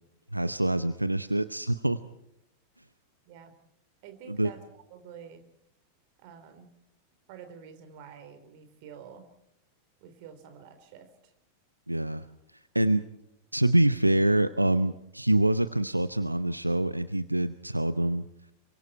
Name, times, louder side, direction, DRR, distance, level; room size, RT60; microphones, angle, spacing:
voice 1, 0.3-2.0 4.3-4.5 11.9-12.2 12.7-13.0 13.5-18.2, right 1 dB, 85° right, 14 dB, 0.8 m, -25 dB
voice 2, 4.0-5.4 6.2-6.7 7.3-9.3 10.0-11.3, right 7 dB, 45° right, 9 dB, 3.9 m, -48 dB
27.5 x 24.0 x 4.4 m, 0.78 s
figure-of-eight pair, 90°, 0 cm